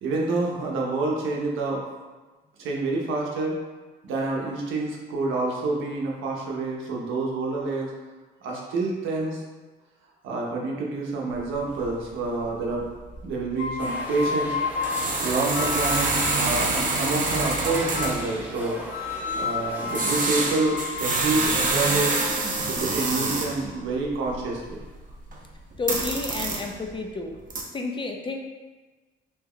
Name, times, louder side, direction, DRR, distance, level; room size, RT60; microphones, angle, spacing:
voice 1, 0.0-1.8 2.6-3.6 4.0-7.9 8.4-9.4 10.2-12.9 13.2-14.6 15.2-18.8 19.3-22.2 22.7-24.8, right 3 dB, 85° right, -2 dB, 0.7 m, -28 dB
sound 1, 11.3-11.4 11.7-12.0 12.2-12.4 12.7-12.8 13.1-13.3 14.8-18.4 19.9-23.7 24.0-25.4 25.7-26.9 27.3-27.6, right 3 dB, 40° right, 0.6 m, -26 dB
sound 2, 13.5-16.4 17.2-18.3 18.9-22.9, left 5 dB, 85° left, 0.5 m, -32 dB
sound 3, 13.8-20.2, equal, 10° right, 0.7 m, -37 dB
voice 2, 25.8-27.3 27.7-28.4, left 3 dB, 25° left, 3 dB, 0.4 m, -30 dB
2.9 x 2.2 x 3.5 m, 1.2 s
cardioid pair, 90°, 20 cm